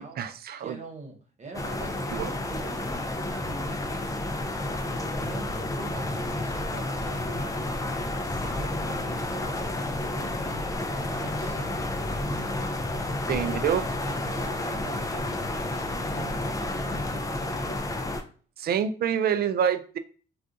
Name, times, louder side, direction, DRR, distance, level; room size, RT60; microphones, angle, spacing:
voice 1, 0.0-0.8 2.1-2.3 13.3-13.8 18.6-20.0, right 8 dB, 50° right, 0.4 m, -27 dB
voice 2, 0.6-4.2 4.9-12.6 13.0-17.9, right 3 dB, 35° right, 0.8 m, -44 dB
sound 1, 1.5-18.2, left 2 dB, 15° left, 0.5 m, -31 dB
2.4 x 2.4 x 3.7 m
cardioid pair, 90°, 20 cm